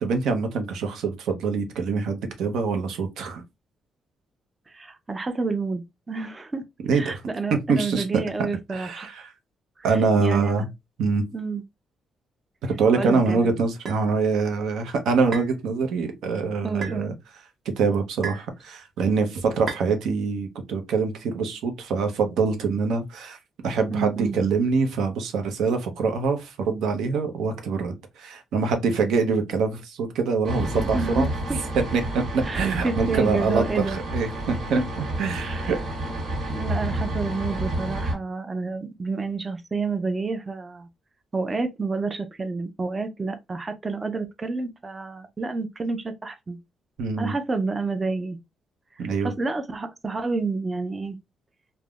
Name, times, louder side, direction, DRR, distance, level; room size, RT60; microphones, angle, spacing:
voice 1, 0.0-3.4 6.8-7.2 7.7-8.0 8.7-9.3 9.8-10.7 11.0-11.2 12.8-17.1 17.7-23.4 23.6-31.3 31.7-34.8 35.2-35.8 47.0-47.3 49.0-49.3, right 4 dB, 85° right, 0.7 m, -24 dB
voice 2, 4.7-6.6 6.9-9.1 9.8-9.9 10.2-10.7 11.3-11.6 12.9-13.5 16.6-17.1 23.9-24.4 30.9-31.6 32.4-34.0 34.8-34.9 35.4-35.7 36.5-40.9 41.3-46.6 47.2-48.4 49.0-51.2, right 3 dB, 20° right, 0.4 m, -29 dB
sound 1, 13.9-14.0 15.3-15.6 16.8-17.0 18.2-18.5 19.7-19.9, right 4 dB, 50° right, 0.9 m, -33 dB
sound 2, 30.4-38.1, right 1 dB, 65° right, 1.3 m, -30 dB
3.5 x 2.1 x 2.3 m
cardioid pair, 135°, 0 cm